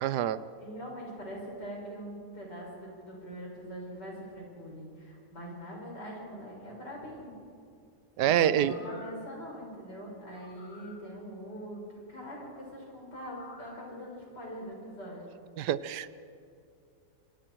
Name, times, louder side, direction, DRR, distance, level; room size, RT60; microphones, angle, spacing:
voice 1, 0.0-0.4 8.2-8.7 15.6-16.1, right 11 dB, 80° right, 16 dB, 1.3 m, -26 dB
voice 2, 0.6-7.3 8.2-15.2, equal, 85° left, -2 dB, 6.6 m, -42 dB
sound 1, 8.7-9.3 10.3-11.0 13.1-13.8 14.3-14.4, left 3 dB, 50° left, 2.4 m, -52 dB
26.5 x 25.0 x 4.6 m, 2.5 s
omnidirectional pair, 1.8 m